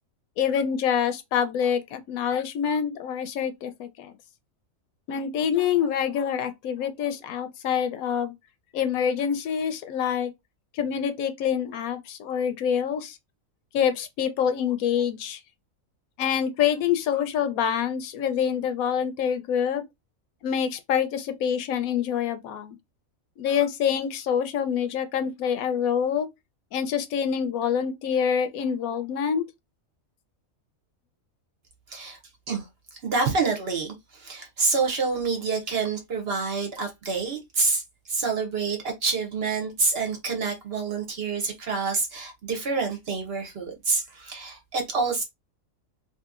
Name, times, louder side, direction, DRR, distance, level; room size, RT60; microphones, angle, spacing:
voice 1, 0.4-4.1 5.1-8.3 8.7-10.3 10.7-13.2 13.7-15.4 16.2-19.8 20.4-22.8 23.4-26.3 26.7-29.4, left 8 dB, 80° left, 1.0 m, -26 dB
voice 2, 31.9-32.2 32.5-37.8 38.1-45.2, right 4 dB, 55° right, 0.8 m, -27 dB
2.7 x 2.7 x 2.4 m
omnidirectional pair, 1.5 m